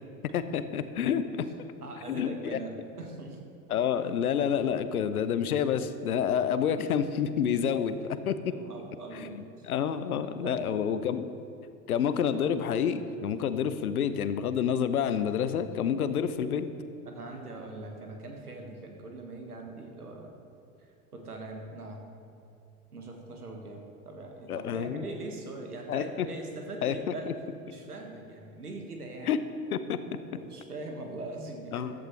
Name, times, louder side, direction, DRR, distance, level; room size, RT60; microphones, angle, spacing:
voice 1, 0.2-1.5 2.1-2.6 3.7-8.5 9.2-11.2 11.9-16.7 24.5-25.1 25.9-26.3 26.8-27.1 29.3-29.4 29.7-30.0 31.7-31.9, left 8 dB, 70° left, 12 dB, 0.7 m, -28 dB
voice 2, 1.8-3.4 8.5-10.8 12.0-12.1 17.0-20.3 21.1-22.0 22.9-27.3 27.7-29.4 30.3-31.9, right 2 dB, 80° right, 2 dB, 1.6 m, -42 dB
14.0 x 11.0 x 3.2 m, 2.6 s
figure-of-eight pair, 75°, 45 cm